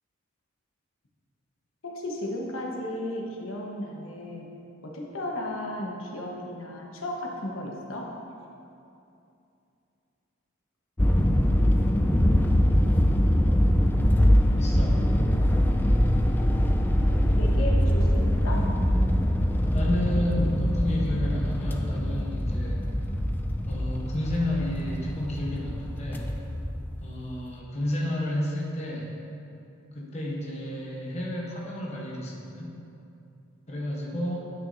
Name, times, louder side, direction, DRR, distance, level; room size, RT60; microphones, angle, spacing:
voice 1, 1.8-4.5 4.8-8.1 17.4-18.7, left 1 dB, 85° left, -1 dB, 1.2 m, -34 dB
sound 1, 11.0-27.1, equal, 10° left, 0.3 m, -23 dB
voice 2, 14.6-15.0 19.7-22.9 23.7-26.3 27.0-29.1 29.9-32.7 33.7-34.4, left 1 dB, 35° left, -3 dB, 1.0 m, -31 dB
9.7 x 8.5 x 2.6 m, 2.6 s
head